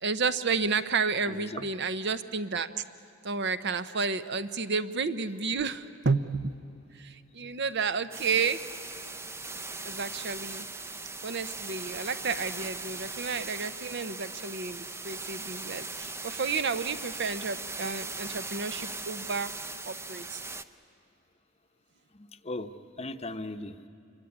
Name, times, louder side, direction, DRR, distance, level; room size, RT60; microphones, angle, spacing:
voice 1, 0.0-2.7 3.2-6.6 6.9-8.6 9.8-10.7 11.2-19.5 19.9-20.4, right 5 dB, 55° right, 12 dB, 0.8 m, -31 dB
voice 2, 1.3-1.7 22.1-23.9, left 2 dB, 30° left, 9 dB, 0.8 m, -38 dB
sound 1, 8.1-20.6, right 3 dB, 10° right, 0.6 m, -39 dB
26.0 x 22.0 x 9.8 m, 2.6 s
head